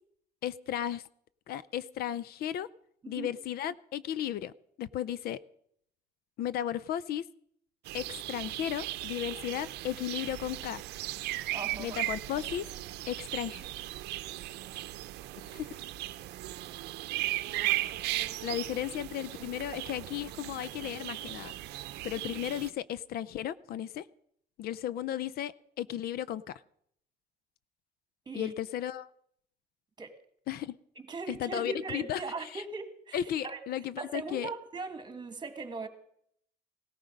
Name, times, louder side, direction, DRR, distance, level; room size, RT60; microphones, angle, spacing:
voice 1, 0.4-1.0 1.5-2.7 3.1-4.5 4.8-5.4 6.4-7.2 7.9-10.8 11.8-12.7 13.1-13.7 15.4-15.7 18.4-21.5 22.0-24.1 24.6-26.5 28.3-29.1 30.5-30.8 31.3-32.6 33.1-34.5, left 11 dB, 65° left, 0.5 m, -35 dB
sound 1, 7.9-22.7, right 16 dB, 85° right, 0.7 m, -37 dB
voice 2, 11.5-12.0 28.3-28.5 30.0-30.2 31.0-33.6 34.0-35.9, right 4 dB, 25° right, 1.9 m, -39 dB
17.5 x 13.5 x 5.2 m
cardioid pair, 110°, 17 cm